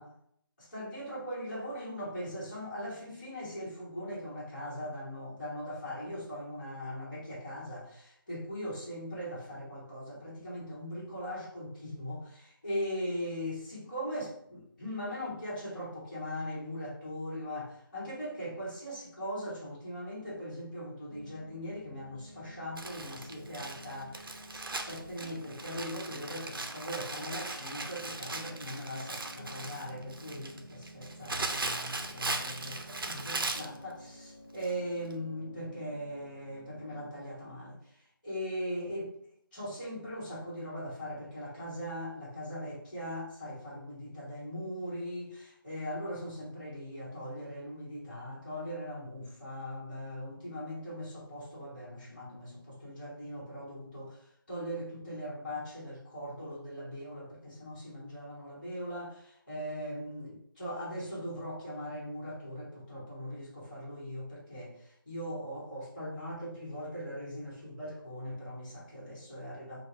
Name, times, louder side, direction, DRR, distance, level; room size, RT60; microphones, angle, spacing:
voice 1, 0.6-39.2 39.5-69.8, equal, 25° left, -11 dB, 1.6 m, -40 dB
sound 1, 21.1-37.1, equal, 15° right, 0.5 m, -51 dB
Crumpling crinkling, 22.8-33.8 34.6-34.7 35.1-35.2, right 3 dB, 70° right, 0.6 m, -38 dB
4.4 x 2.4 x 4.4 m, 0.69 s
figure-of-eight pair, 180°, 12 cm